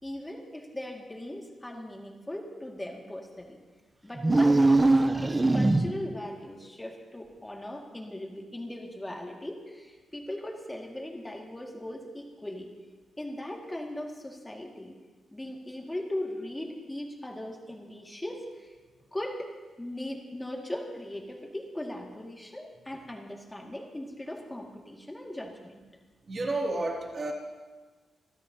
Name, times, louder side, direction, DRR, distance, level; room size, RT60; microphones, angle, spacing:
voice 1, 0.0-3.6 4.0-12.7 13.2-15.0 15.3-18.7 19.1-19.5 19.8-25.8, left 1 dB, 10° left, 1 dB, 1.9 m, -39 dB
sound 1, 4.2-6.2, right 2 dB, 20° right, 0.6 m, -22 dB
voice 2, 26.3-27.3, right 2 dB, 35° right, -1 dB, 2.4 m, -31 dB
27.5 x 13.0 x 2.8 m, 1.4 s
wide cardioid pair, 130°, 0 cm